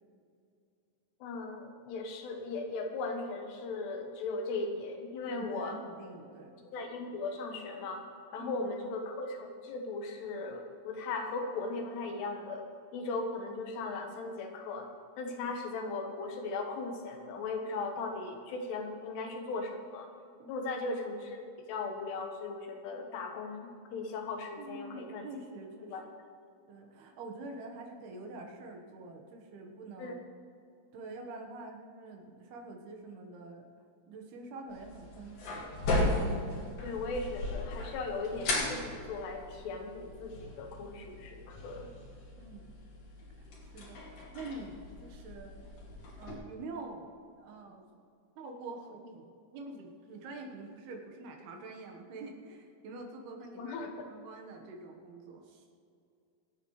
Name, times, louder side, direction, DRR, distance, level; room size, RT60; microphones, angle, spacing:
voice 1, 1.2-5.8 6.7-8.0 8.3-12.7 12.9-14.9 15.2-20.1 20.5-25.3 25.8-26.0 30.0-30.1 36.8-41.9 53.6-54.1, left 3 dB, 85° left, 3 dB, 3.4 m, -38 dB
voice 2, 5.2-6.6 8.4-8.5 20.4-20.7 24.6-25.9 26.7-30.2 30.9-33.7 34.1-35.7 42.4-42.7 43.6-45.6 46.2-47.1 47.4-47.9 48.4-53.8 54.1-55.7, right 3 dB, 75° right, 2 dB, 3.3 m, -46 dB
sound 1, 34.7-46.3, left 2 dB, 55° left, 3.6 m, -37 dB
26.0 x 8.7 x 3.2 m, 2.5 s
omnidirectional pair, 4.7 m